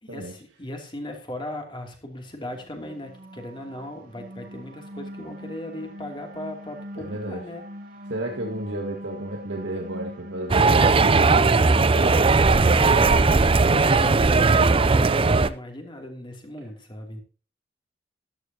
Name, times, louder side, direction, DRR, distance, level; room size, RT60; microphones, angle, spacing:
voice 1, 0.0-7.7 12.7-17.2, left 1 dB, 25° left, 3 dB, 2.8 m, -37 dB
sound 1, 2.4-12.9, equal, 50° right, 2.7 m, -42 dB
voice 2, 7.0-7.4 8.1-13.3 13.5-14.8, right 1 dB, 85° right, 1 dB, 1.8 m, -33 dB
sound 2, 10.5-15.5, right 3 dB, 30° right, 0.5 m, -18 dB
13.5 x 12.0 x 2.9 m, 0.34 s
head